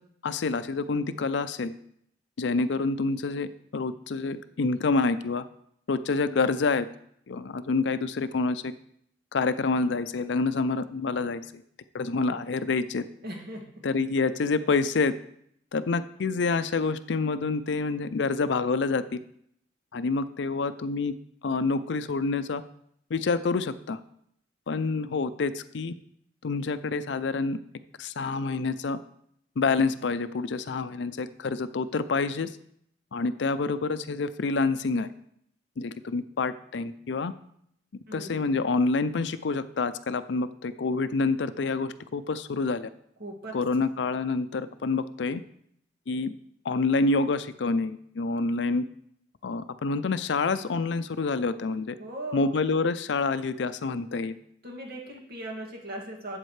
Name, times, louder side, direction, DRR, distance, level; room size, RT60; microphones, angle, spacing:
voice 1, 0.2-1.7 2.4-3.5 3.7-5.4 5.9-6.9 7.3-8.7 9.3-11.6 11.9-13.0 13.8-15.1 15.7-19.2 19.9-21.1 21.4-22.6 23.1-24.0 24.7-25.9 26.4-27.6 28.0-29.0 29.6-32.5 33.1-35.1 35.8-37.3 38.1-42.9 43.5-45.4 46.1-46.3 46.6-48.8 49.4-52.0 52.3-54.4, left 3 dB, 65° left, 13 dB, 0.5 m, -27 dB
voice 2, 13.2-13.7 38.1-38.5 43.2-43.6 52.0-52.6 54.6-56.4, right 1 dB, 55° right, 0 dB, 2.2 m, -38 dB
12.0 x 8.0 x 3.2 m, 0.70 s
head